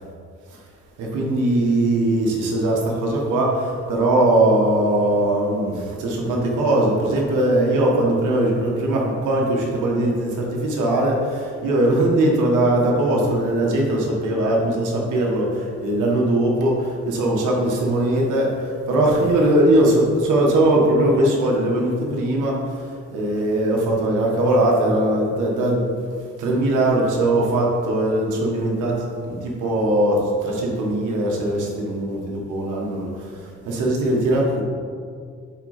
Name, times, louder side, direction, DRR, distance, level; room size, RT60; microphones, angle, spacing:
voice 1, 1.0-3.5 3.9-5.7 6.0-11.2 11.6-15.4 15.8-16.7 17.0-18.5 18.9-22.5 23.1-25.8 26.4-28.9 29.2-30.2 30.4-33.1 33.7-34.6, right 1 dB, 90° right, -1 dB, 1.6 m, -20 dB
8.7 x 3.8 x 5.0 m, 2.2 s
cardioid pair, 90°, 30 cm